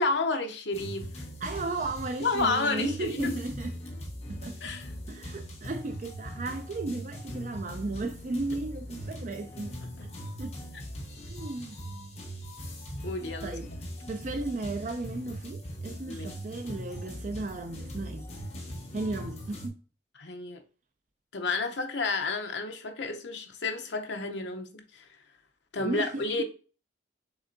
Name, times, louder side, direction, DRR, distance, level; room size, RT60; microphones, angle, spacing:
voice 1, 0.0-1.3 2.2-3.3 4.6-4.8 13.0-13.5 16.1-16.3 20.2-20.6 21.3-25.0 25.7-26.4, left 3 dB, 70° left, 0.8 m, -31 dB
sound 1, 0.7-19.7, equal, 35° left, 0.9 m, -40 dB
voice 2, 1.4-3.7 4.4-4.6 5.1-9.8 10.4-10.6 11.3-11.8 13.4-13.7 14.1-18.2 18.9-19.8 25.8-26.4, right 2 dB, 40° right, 0.4 m, -35 dB
6.0 x 3.4 x 2.6 m
head